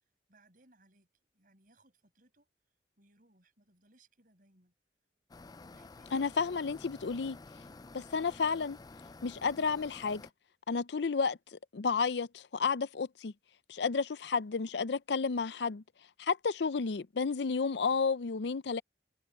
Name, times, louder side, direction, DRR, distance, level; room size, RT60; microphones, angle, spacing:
voice 1, 0.3-1.1 1.3-2.5 3.0-4.7 5.6-7.3, right 2 dB, 50° right, 5.9 m, -67 dB
sound 1, 5.3-10.3, left 3 dB, 20° left, 0.4 m, -51 dB
voice 2, 6.1-7.4 7.9-8.8 9.2-10.2 10.7-13.3 13.7-15.8 16.2-18.8, left 5 dB, 70° left, 0.5 m, -32 dB
head